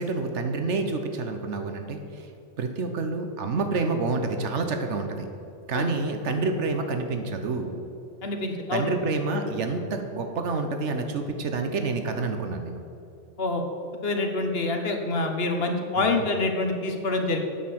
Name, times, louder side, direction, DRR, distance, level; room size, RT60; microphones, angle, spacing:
voice 1, 0.0-2.3 2.6-5.3 5.7-7.7 8.7-12.8 15.9-16.3, right 3 dB, 80° right, 5 dB, 1.2 m, -28 dB
voice 2, 8.2-8.9 13.4-13.6 14.0-17.4, left 2 dB, 60° left, 3 dB, 1.4 m, -26 dB
9.2 x 6.6 x 7.7 m, 2.6 s
omnidirectional pair, 1.2 m